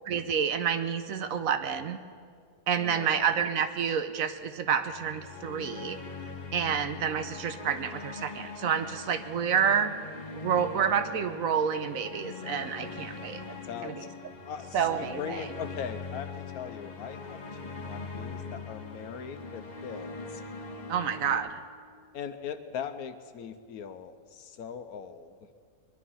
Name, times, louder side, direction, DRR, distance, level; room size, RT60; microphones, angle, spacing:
voice 1, 0.1-2.0 2.7-6.0 6.5-9.9 10.4-13.5 13.8-14.0 14.7-15.4 20.9-21.6, right 7 dB, 65° right, 9 dB, 1.1 m, -29 dB
voice 2, 2.8-3.3 13.7-14.1 14.4-20.4 22.1-25.3, left 7 dB, 75° left, 10 dB, 1.2 m, -40 dB
sound 1, 4.8-21.4, left 4 dB, 30° left, 1.1 m, -42 dB
21.5 x 11.5 x 5.6 m, 2.1 s
omnidirectional pair, 1.6 m